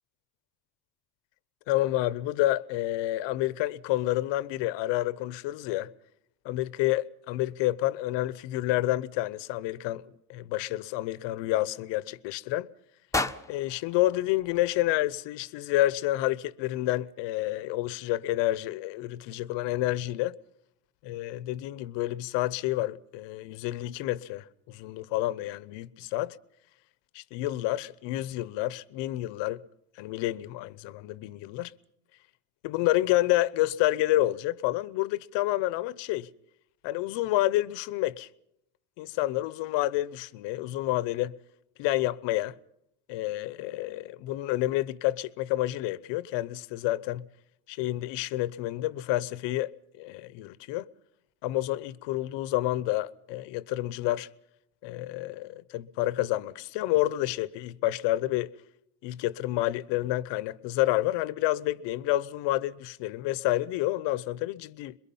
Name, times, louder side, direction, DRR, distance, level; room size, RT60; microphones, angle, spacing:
voice 1, 1.7-5.9 6.4-10.0 10.3-12.7 13.5-20.4 21.0-26.4 27.1-29.6 30.0-31.7 32.6-36.3 36.8-38.3 39.0-41.4 41.8-42.6 43.1-47.3 47.7-50.9 51.4-54.3 54.8-58.5 59.0-65.0, left 16 dB, 75° left, 1.0 m, -29 dB
sound 1, 13.1-15.3, left 2 dB, 5° left, 1.1 m, -35 dB
27.0 x 22.5 x 5.5 m
supercardioid pair, 90°, 43 cm